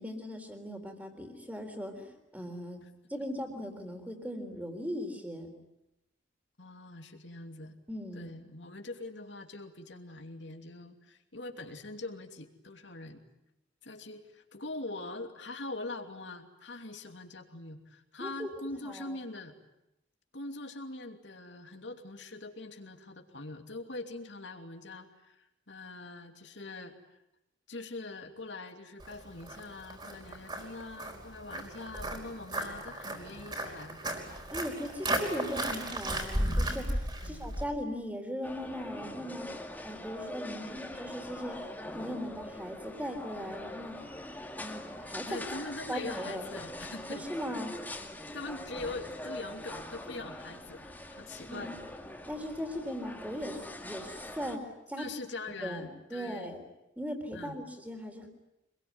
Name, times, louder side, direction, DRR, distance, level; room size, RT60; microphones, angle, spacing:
voice 1, 0.0-2.8 3.1-5.5 7.9-8.3 18.2-19.2 34.5-39.5 39.8-43.9 44.6-45.4 45.9-46.4 47.1-47.7 51.5-51.7 52.3-55.0 55.6-56.6 57.0-58.3, equal, 10° right, 6 dB, 3.8 m, -39 dB
voice 2, 6.6-7.8 8.1-13.2 13.8-19.5 20.3-26.9 27.7-34.0 37.2-37.5 45.3-47.2 48.3-51.7 55.0-56.6 57.3-57.6, left 2 dB, 70° left, 5 dB, 2.9 m, -43 dB
Walk footsteps, 29.0-37.6, right 1 dB, 25° right, 4.9 m, -35 dB
sound 1, 38.4-54.6, left 1 dB, 10° left, 2.3 m, -43 dB
26.0 x 22.0 x 9.7 m, 0.88 s
head